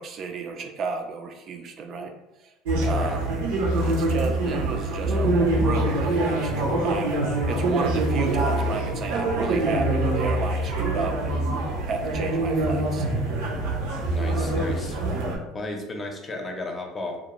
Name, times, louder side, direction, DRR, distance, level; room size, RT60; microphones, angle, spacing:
voice 1, 0.0-2.1 2.4-2.5 2.8-3.3 3.8-11.5 11.9-13.1, right 4 dB, 50° right, 4 dB, 0.4 m, -33 dB
sound 1, 2.7-15.4, right 2 dB, 90° right, 0.7 m, -24 dB
voice 2, 14.1-15.0 15.5-17.2, left 2 dB, 25° left, 2 dB, 0.6 m, -34 dB
2.5 x 2.3 x 3.0 m, 0.95 s
supercardioid pair, 90°, 0 cm